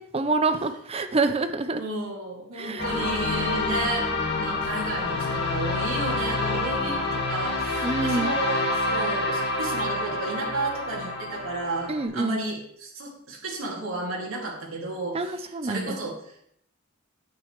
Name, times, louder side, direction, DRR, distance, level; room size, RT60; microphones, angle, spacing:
voice 1, 0.1-1.8 2.6-2.8 7.8-8.3 11.9-12.4 15.1-16.0, right 3 dB, 30° right, 9 dB, 0.6 m, -26 dB
voice 2, 1.7-4.0 4.3-16.5, right 2 dB, 85° right, -3 dB, 2.6 m, -33 dB
sound 1, 2.8-12.0, left 2 dB, 55° left, 1.9 m, -27 dB
9.6 x 9.0 x 3.2 m, 0.70 s
head